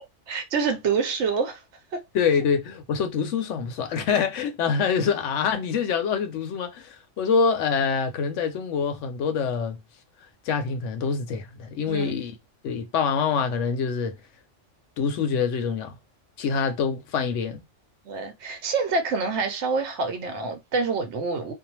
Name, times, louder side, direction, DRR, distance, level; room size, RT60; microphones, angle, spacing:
voice 1, 0.3-1.6 1.9-2.0 11.9-12.1 18.0-21.5, right 4 dB, 70° right, 1.0 m, -26 dB
voice 2, 2.1-9.8 10.5-12.3 12.6-14.2 15.0-15.9 16.4-17.6, left 6 dB, 85° left, 1.0 m, -25 dB
2.6 x 2.1 x 2.9 m
omnidirectional pair, 1.2 m